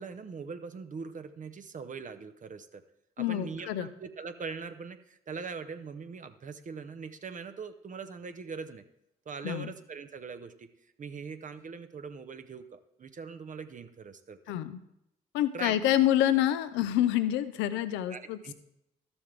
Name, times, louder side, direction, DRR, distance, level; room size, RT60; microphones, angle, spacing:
voice 1, 0.0-2.8 3.2-8.8 9.3-10.7 11.0-14.4 15.5-15.8 18.1-18.5, right 5 dB, 45° right, 9 dB, 0.8 m, -41 dB
voice 2, 3.2-3.9 9.4-9.7 14.5-14.8 15.3-18.5, left 12 dB, 80° left, 13 dB, 0.6 m, -27 dB
12.5 x 7.1 x 3.3 m, 0.82 s
hypercardioid pair, 45°, 19 cm